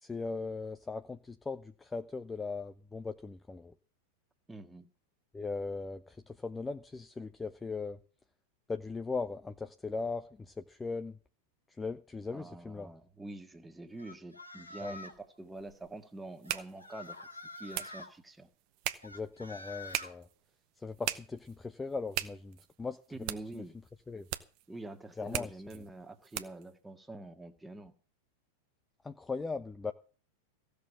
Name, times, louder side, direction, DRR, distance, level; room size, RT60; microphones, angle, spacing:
voice 1, 0.0-3.7 5.3-8.0 8.7-11.2 11.7-12.9 14.8-14.9 19.0-20.3 20.8-23.0 23.5-23.6 24.1-24.3 25.2-25.8 29.0-29.9, left 4 dB, 10° left, 9 dB, 0.7 m, -39 dB
voice 2, 4.5-4.9 12.3-17.2 17.6-18.5 23.1-23.8 24.7-27.9, right 2 dB, 10° right, 7 dB, 1.8 m, -46 dB
sound 1, 14.0-15.2 16.4-18.1 19.0-20.1, left 3 dB, 85° left, 2.1 m, -47 dB
sound 2, 15.1-26.7, right 14 dB, 45° right, 1.1 m, -42 dB
16.0 x 6.8 x 8.5 m, 0.37 s
figure-of-eight pair, 90°, 0 cm